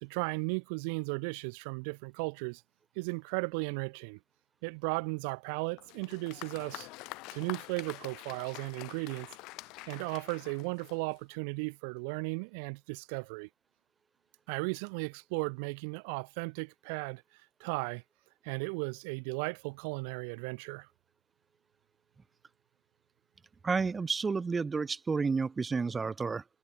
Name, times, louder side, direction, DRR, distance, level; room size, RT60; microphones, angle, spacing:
voice 1, 0.0-2.6 3.0-4.2 4.6-6.9 7.3-9.3 9.9-13.5 14.5-17.2 17.6-18.0 18.4-20.9, right 34 dB, 85° right, 1.0 m, -35 dB
Applause, 5.8-11.3, left 23 dB, 60° left, 2.8 m, -46 dB
voice 2, 23.6-26.4, right 4 dB, 15° right, 0.9 m, -31 dB
cardioid pair, 175°, 0 cm